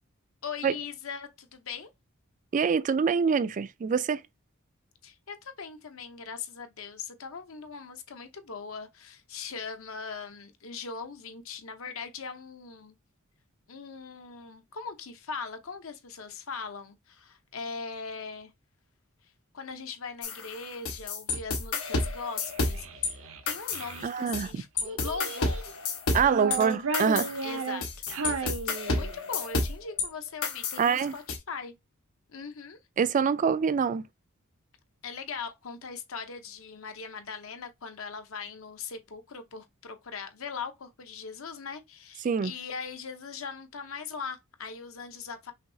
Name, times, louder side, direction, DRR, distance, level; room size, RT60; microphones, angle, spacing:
voice 1, 0.4-1.9 5.0-13.0 13.7-18.5 19.5-25.7 26.1-26.5 27.4-27.8 28.2-31.7 32.3-32.8 35.0-45.5, left 5 dB, 70° left, 0.8 m, -40 dB
voice 2, 2.5-4.2 24.0-24.6 26.1-27.3 30.8-31.1 33.0-34.0 42.2-42.5, right 6 dB, 35° right, 0.3 m, -25 dB
sound 1, 20.2-23.1 23.5-24.5 24.8-30.1 30.4-31.4, left 3 dB, 90° left, 1.3 m, -31 dB
Child speech kid speaking, 22.4-24.1 24.8-25.7 26.2-29.3, right 4 dB, 70° right, 0.7 m, -35 dB
5.8 x 2.7 x 2.7 m
head